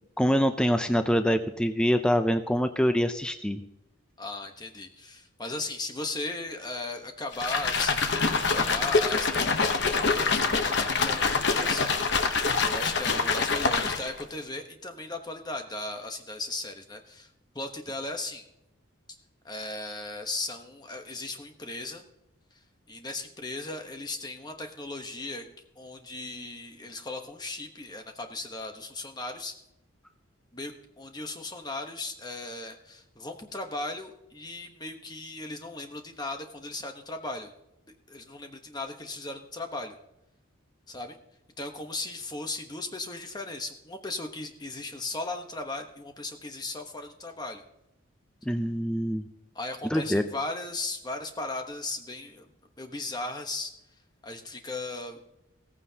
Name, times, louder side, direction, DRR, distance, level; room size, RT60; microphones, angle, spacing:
voice 1, 0.2-3.6 48.4-49.2 49.8-50.2, equal, 5° left, 8 dB, 0.4 m, -25 dB
voice 2, 4.2-8.2 8.5-17.3 17.5-18.5 19.4-22.0 22.5-22.6 22.9-25.5 25.8-29.5 30.5-37.5 38.1-40.0 40.9-41.2 41.6-47.6 49.5-52.5 52.8-53.7 54.2-55.3, left 2 dB, 20° left, 5 dB, 1.0 m, -37 dB
sound 1, 7.3-14.2, left 4 dB, 55° left, 0.9 m, -25 dB
16.0 x 15.0 x 2.8 m, 0.85 s
head